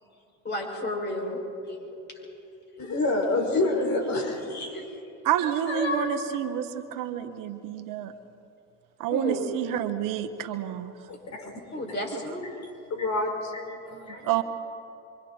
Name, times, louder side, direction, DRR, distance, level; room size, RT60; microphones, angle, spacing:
voice 1, 0.4-2.3 2.8-2.9 3.5-3.7 4.7-4.9 5.7-6.2 9.1-9.5 11.7-12.4, left 2 dB, 30° left, 0 dB, 6.6 m, -33 dB
voice 2, 2.8-4.8 11.1-11.5 12.9-14.3, left 2 dB, 50° left, 3 dB, 4.8 m, -28 dB
voice 3, 5.2-8.1 9.0-10.9 12.1-12.2 14.2-14.4, right 11 dB, 65° right, 9 dB, 1.4 m, -28 dB
27.5 x 24.5 x 4.5 m, 2.6 s
supercardioid pair, 75°, 35 cm